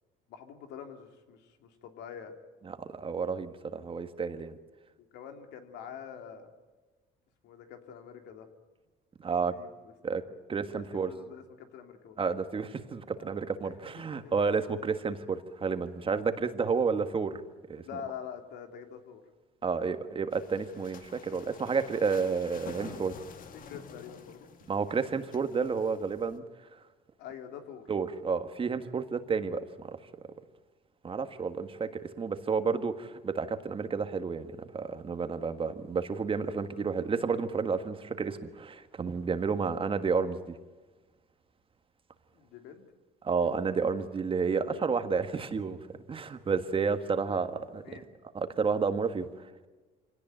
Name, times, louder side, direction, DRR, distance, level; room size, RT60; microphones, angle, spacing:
voice 1, 0.3-2.3 5.1-6.5 7.4-8.5 9.5-9.9 10.3-10.4 10.7-12.2 13.2-13.3 13.6-14.3 17.9-19.2 19.6-19.9 22.8-23.2 23.7-24.5 27.2-27.8 36.6-36.8 42.3-42.8 47.7-48.1, left 8 dB, 85° left, 5 dB, 3.0 m, -46 dB
voice 2, 2.7-4.6 9.2-9.5 10.0-10.2 10.5-11.1 12.2-17.4 17.7-17.8 19.6-23.1 24.7-26.4 27.9-29.9 31.0-40.5 43.2-45.8 46.1-47.8 48.3-49.7, right 5 dB, 30° right, 9 dB, 1.7 m, -31 dB
sound 1, 20.3-26.4, left 6 dB, 55° left, 2.0 m, -49 dB
25.0 x 18.0 x 9.1 m, 1.3 s
cardioid pair, 110°, 17 cm